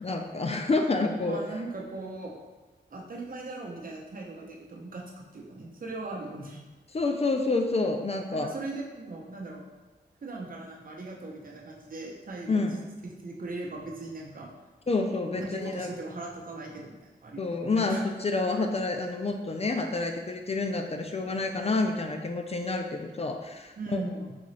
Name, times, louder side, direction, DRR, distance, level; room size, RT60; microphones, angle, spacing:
voice 1, 0.0-1.4 6.9-8.5 12.5-12.8 14.9-15.9 17.4-24.0, left 3 dB, 35° left, 4 dB, 0.4 m, -28 dB
voice 2, 1.2-2.3 2.9-6.6 8.3-9.7 10.2-12.6 13.2-14.5 15.3-17.4 17.7-18.0 23.8-24.4, right 2 dB, 50° right, -1 dB, 0.7 m, -39 dB
3.9 x 3.7 x 3.2 m, 1.2 s
wide cardioid pair, 85°, 18 cm